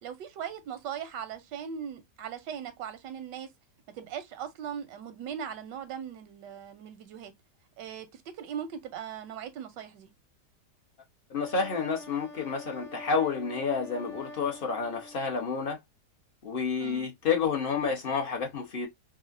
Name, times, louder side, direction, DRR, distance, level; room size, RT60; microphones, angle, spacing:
voice 1, 0.0-3.5 3.9-7.3 7.8-10.1 16.8-17.1, right 8 dB, 85° right, 1.3 m, -39 dB
voice 2, 11.3-15.8 16.4-18.9, left 5 dB, 50° left, 0.6 m, -30 dB
Wind instrument woodwind instrument, 11.4-15.7, left 2 dB, 85° left, 1.8 m, -46 dB
4.8 x 2.1 x 2.5 m
omnidirectional pair, 1.9 m